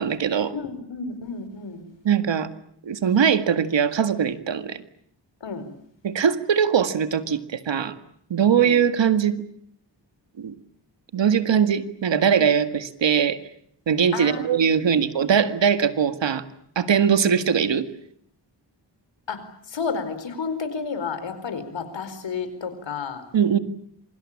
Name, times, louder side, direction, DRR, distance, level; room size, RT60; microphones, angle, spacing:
voice 1, 0.0-0.5 2.0-2.5 2.8-4.8 6.0-7.9 8.3-9.4 10.4-10.5 11.1-13.4 13.9-16.4 16.8-17.9 23.3-23.6, right 7 dB, 80° right, 10 dB, 2.0 m, -21 dB
voice 2, 0.5-1.9 5.4-5.7 8.5-8.6 14.1-15.1 19.3-19.4 19.7-23.2, left 5 dB, 85° left, 10 dB, 4.7 m, -31 dB
27.5 x 24.5 x 8.7 m, 0.69 s
wide cardioid pair, 95°, 44 cm